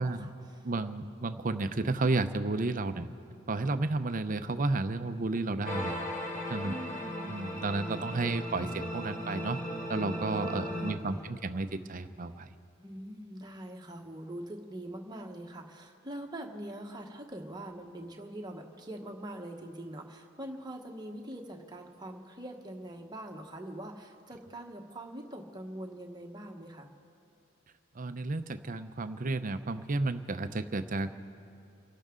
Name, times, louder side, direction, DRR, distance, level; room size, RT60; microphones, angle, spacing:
voice 1, 0.0-0.7 6.6-7.6 10.5-11.4 12.8-26.9, right 1 dB, 20° right, 2 dB, 1.2 m, -43 dB
voice 2, 0.6-3.1 3.5-5.9 6.5-6.7 7.3-9.6 9.9-12.5 28.0-31.1, right 3 dB, 40° right, 10 dB, 0.6 m, -32 dB
sound 1, 5.7-11.0, equal, 35° left, 1.3 m, -37 dB
30.0 x 12.0 x 3.8 m, 2.5 s
head